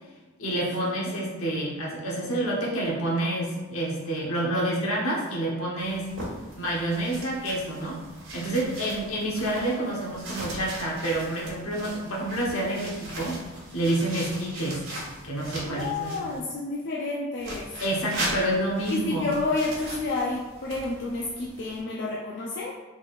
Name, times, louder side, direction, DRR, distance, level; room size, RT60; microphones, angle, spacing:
voice 1, 0.4-6.1 6.6-8.0 8.3-13.4 13.7-14.9 15.2-16.1 17.8-19.3, right 1 dB, 85° left, -4 dB, 1.1 m, -28 dB
sound 1, 5.8-16.4 17.4-21.8, right 1 dB, 85° right, 1.3 m, -39 dB
voice 2, 15.7-17.8 18.9-22.7, left 3 dB, 55° left, -4 dB, 0.4 m, -30 dB
3.8 x 3.6 x 2.4 m, 1.2 s
head